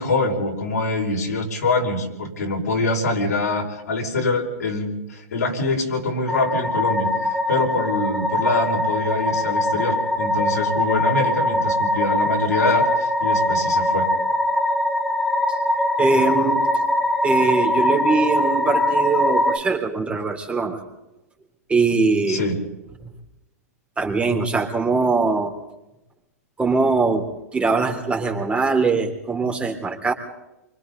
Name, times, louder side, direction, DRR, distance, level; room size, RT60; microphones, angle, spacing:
voice 1, 0.0-7.1 7.5-14.1 22.3-22.5, left 2 dB, 80° left, 0 dB, 5.3 m, -24 dB
sound 1, 6.3-19.6, left 1 dB, ahead, 1.3 m, -22 dB
voice 2, 16.0-16.7 17.2-20.8 21.7-22.4 24.0-25.5 26.6-27.2 27.5-30.1, right 4 dB, 15° right, 3 dB, 3.8 m, -21 dB
28.0 x 25.0 x 4.1 m, 0.95 s
hypercardioid pair, 110°, 9 cm